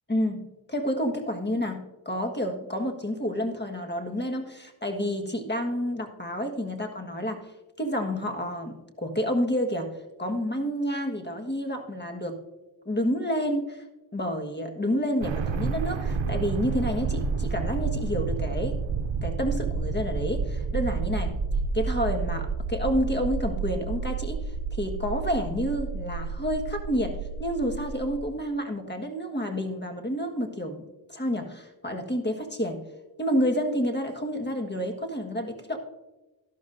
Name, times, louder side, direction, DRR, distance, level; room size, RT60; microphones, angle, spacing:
voice 1, 0.1-7.4 7.8-9.9 10.2-12.4 12.8-13.8 14.1-18.8 19.2-21.3 21.7-24.4 24.7-30.8 31.1-32.8 33.2-35.8, equal, 25° left, 4 dB, 1.6 m, -29 dB
sound 1, 15.2-28.2, right 5 dB, 75° right, 0.7 m, -30 dB
12.5 x 12.0 x 2.6 m, 1.1 s
cardioid pair, 45°, 45 cm